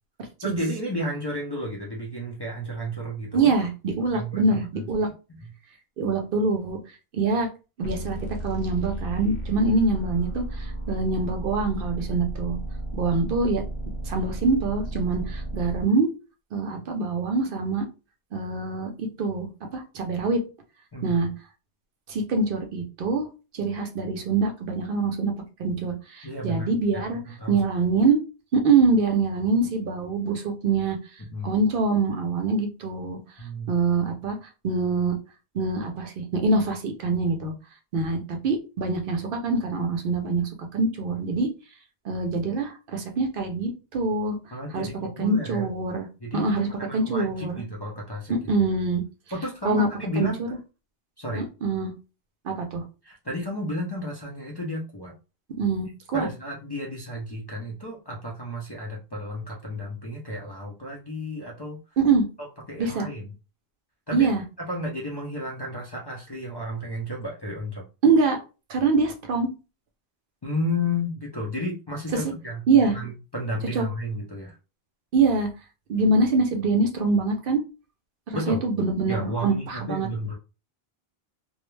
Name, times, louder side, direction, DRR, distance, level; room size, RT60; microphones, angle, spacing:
voice 1, 0.4-3.5 4.1-5.1 20.9-21.2 26.2-27.6 31.2-31.6 33.4-33.7 44.5-45.7 46.2-48.7 49.3-50.4 51.2-51.5 53.0-55.1 56.1-61.8 62.7-63.3 64.1-64.3 64.6-67.8 70.4-74.5 78.3-78.6 79.1-80.4, left 1 dB, 35° left, -3 dB, 0.4 m, -32 dB
voice 2, 3.3-5.1 6.0-6.8 7.1-7.5 7.8-8.2 8.4-12.6 12.9-13.6 14.1-16.1 16.5-17.9 18.3-20.4 21.0-21.3 22.1-23.3 23.5-25.3 25.6-27.2 27.5-28.2 28.5-31.0 31.4-33.2 33.7-34.4 34.6-35.1 35.5-37.5 37.9-41.5 42.0-44.4 44.7-44.9 45.2-46.1 46.3-47.5 48.3-49.0 49.6-49.9 50.2-50.5 51.4-51.9 52.4-52.8 55.6-56.3 62.0-62.2 62.8-63.1 64.1-64.4 68.0-68.4 68.7-69.5 72.1-72.2 72.7-73.0 73.7-73.9 75.1-75.5 75.9-77.6 78.3-80.1, right 3 dB, 65° right, 4 dB, 0.7 m, -24 dB
sound 1, 7.8-15.8, right 1 dB, 65° left, 0.9 m, -33 dB
2.3 x 2.0 x 3.1 m, 0.31 s
omnidirectional pair, 1.0 m